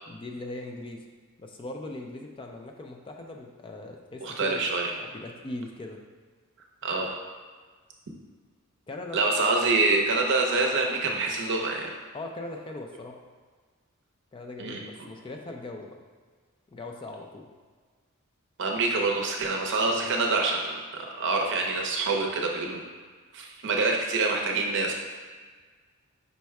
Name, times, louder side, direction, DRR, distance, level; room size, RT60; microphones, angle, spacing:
voice 1, 0.1-1.0 1.4-4.6 5.0-6.0 8.9-9.4 12.1-13.2 14.3-15.9 16.7-17.5, left 2 dB, 25° left, 2 dB, 0.4 m, -39 dB
voice 2, 4.2-4.9 6.8-7.1 9.1-11.9 14.6-14.8 18.6-22.9 23.3-24.9, right 3 dB, 60° right, 1 dB, 0.6 m, -26 dB
5.2 x 2.2 x 4.6 m, 1.5 s
head